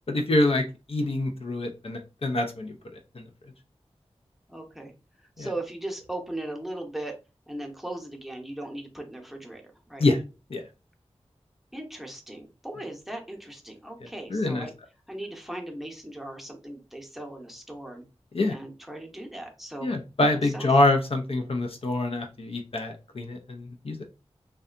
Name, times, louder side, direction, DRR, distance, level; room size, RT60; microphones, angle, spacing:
voice 1, 0.1-2.7 3.1-3.2 5.4-5.5 10.0-10.2 10.5-10.6 14.0-14.7 18.3-18.6 19.8-24.0, left 2 dB, 60° left, 4 dB, 0.5 m, -26 dB
voice 2, 4.5-4.9 5.4-7.1 7.5-9.6 9.9-10.0 11.7-14.7 15.1-18.0 18.5-19.9 20.5-20.7, right 1 dB, ahead, 2 dB, 0.7 m, -38 dB
2.6 x 2.2 x 2.5 m, 0.30 s
wide cardioid pair, 45°, 11 cm